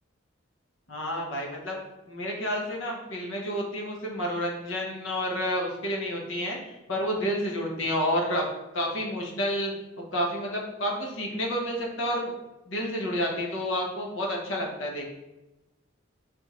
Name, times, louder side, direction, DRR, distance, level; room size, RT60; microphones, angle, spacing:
voice 1, 0.9-1.8 2.1-8.4 8.7-9.7 10.1-12.3 12.7-15.1, equal, 80° left, 0 dB, 0.9 m, -30 dB
3.4 x 3.4 x 3.0 m, 1.0 s
head